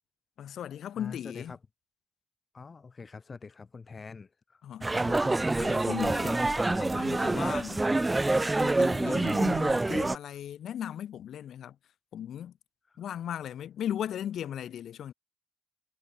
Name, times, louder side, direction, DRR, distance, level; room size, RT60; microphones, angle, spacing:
voice 1, 0.4-1.5 4.6-7.9 8.6-11.8 12.1-12.5 13.0-15.1, left 10 dB, 80° left, 2.4 m, -37 dB
voice 2, 0.9-1.6 2.5-4.6 12.9-13.0, left 4 dB, 45° left, 1.5 m, -45 dB
sound 1, 4.8-10.2, right 2 dB, 25° right, 0.9 m, -26 dB
supercardioid pair, 55°, 0 cm